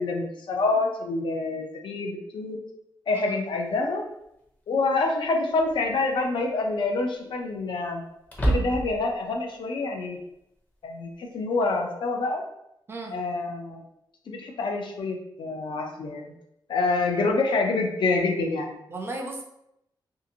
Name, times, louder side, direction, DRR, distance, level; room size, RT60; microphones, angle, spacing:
voice 1, 0.0-2.6 3.1-4.0 4.7-8.0 8.4-10.2 10.8-12.4 13.1-13.8 14.3-16.4 16.7-18.8, left 3 dB, 75° left, 2 dB, 0.5 m, -27 dB
sound 1, 3.7-3.8 5.6-6.0 6.4-6.5 8.2-9.1, right 1 dB, 20° left, 0.5 m, -27 dB
voice 2, 18.9-19.4, right 2 dB, 30° right, 1 dB, 0.4 m, -35 dB
2.7 x 2.4 x 2.7 m, 0.80 s
wide cardioid pair, 170°, 8 cm